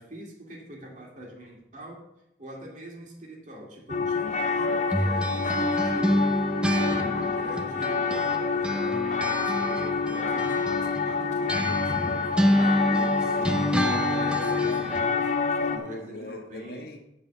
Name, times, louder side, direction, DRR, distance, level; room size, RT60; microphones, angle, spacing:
voice 1, 0.0-2.0 2.4-6.3 6.8-12.8 13.8-15.4 15.7-17.0, equal, 45° right, -1 dB, 2.1 m, -43 dB
sound 1, 3.9-15.8, left 4 dB, 40° left, 0.7 m, -27 dB
sound 2, 4.9-8.4 8.6-15.0, equal, 5° right, 0.4 m, -28 dB
voice 2, 12.3-13.8 14.1-17.0, left 1 dB, 60° left, 2 dB, 1.3 m, -41 dB
10.0 x 4.2 x 6.7 m, 0.86 s
head